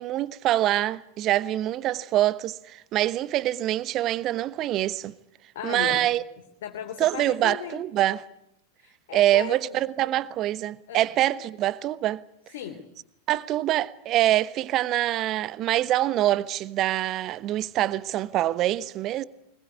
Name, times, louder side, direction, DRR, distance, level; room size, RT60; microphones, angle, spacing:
voice 1, 0.0-5.1 5.6-6.2 7.0-8.2 9.1-12.2 13.3-19.2, right 14 dB, 35° right, 1.0 m, -25 dB
voice 2, 5.5-6.1 6.6-7.8 8.8-9.8 10.9-11.1 12.5-12.8, left 9 dB, 55° left, 3.0 m, -36 dB
23.5 x 21.5 x 9.7 m
figure-of-eight pair, 90°, 0 cm